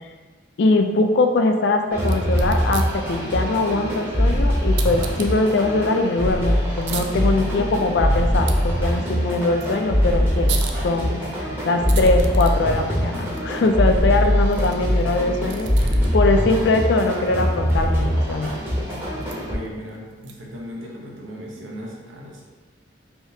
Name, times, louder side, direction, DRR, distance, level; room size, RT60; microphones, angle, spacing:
voice 1, 0.6-10.5 10.8-11.2 11.7-15.7 16.1-18.5 19.0-19.1, left 2 dB, 65° left, 5 dB, 0.3 m, -21 dB
sound 1, 1.9-19.5, equal, 10° right, 0.7 m, -22 dB
sound 2, 2.0-20.6, right 7 dB, 70° right, 0.3 m, -40 dB
voice 2, 15.7-16.2 19.4-22.4, equal, 90° right, -2 dB, 0.7 m, -37 dB
3.5 x 2.7 x 2.7 m, 1.3 s
head